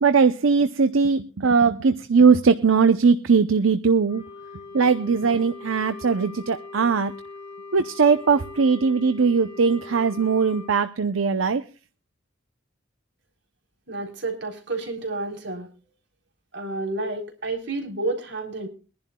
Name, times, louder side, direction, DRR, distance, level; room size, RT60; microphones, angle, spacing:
voice 1, 0.0-4.2 4.7-7.1 7.7-11.6, right 5 dB, 90° right, 10 dB, 0.7 m, -20 dB
Wind instrument woodwind instrument, 4.1-10.7, left 3 dB, 30° left, 6.4 m, -41 dB
voice 2, 13.9-15.7 16.5-18.7, right 2 dB, 60° right, 3 dB, 3.8 m, -30 dB
23.0 x 11.0 x 2.3 m, 0.33 s
head